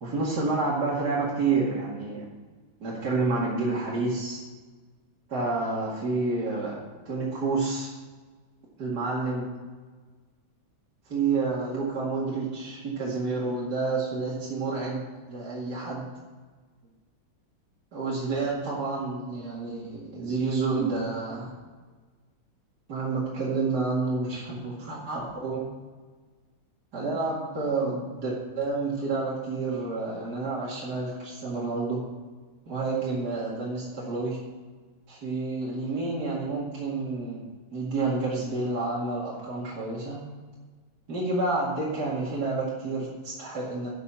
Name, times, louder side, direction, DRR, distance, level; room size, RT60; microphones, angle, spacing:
voice 1, 0.0-2.2 2.8-4.4 5.3-6.8 7.0-7.9 8.8-9.5 11.1-15.0 15.3-16.1 17.9-21.5 22.9-25.6 26.9-32.0 32.7-34.4 35.1-37.4 37.7-40.2 41.1-43.9, right 3 dB, 50° right, -7 dB, 2.7 m, -29 dB
13.0 x 6.0 x 5.7 m, 1.4 s
omnidirectional pair, 2.2 m